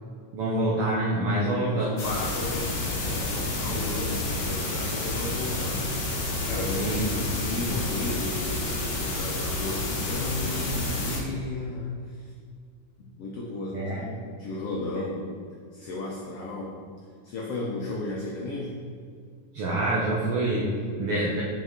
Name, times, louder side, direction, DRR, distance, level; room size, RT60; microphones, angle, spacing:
voice 1, 0.3-1.9 6.8-7.3 13.7-14.1 19.5-21.4, right 1 dB, 80° right, -4 dB, 1.2 m, -26 dB
voice 2, 1.5-5.9 6.5-12.3 13.0-14.1 14.4-15.3 15.7-16.8 17.2-18.8, left 2 dB, 90° left, -2 dB, 1.3 m, -34 dB
sound 1, 2.0-11.2, left 2 dB, 60° left, 1.9 m, -29 dB
5.5 x 5.2 x 3.6 m, 2.2 s
omnidirectional pair, 3.5 m